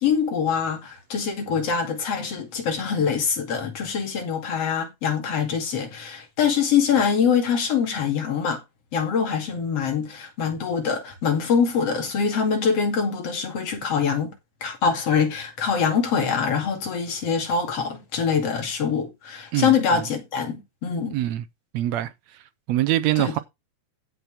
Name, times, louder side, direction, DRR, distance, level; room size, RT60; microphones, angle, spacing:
voice 1, 0.0-8.6 8.9-14.3 14.6-21.2 23.2-23.3, left 6 dB, 50° left, 3.3 m, -24 dB
voice 2, 21.1-21.4 21.7-22.1 22.7-23.4, right 14 dB, 75° right, 1.7 m, -23 dB
15.5 x 6.1 x 3.5 m
omnidirectional pair, 3.7 m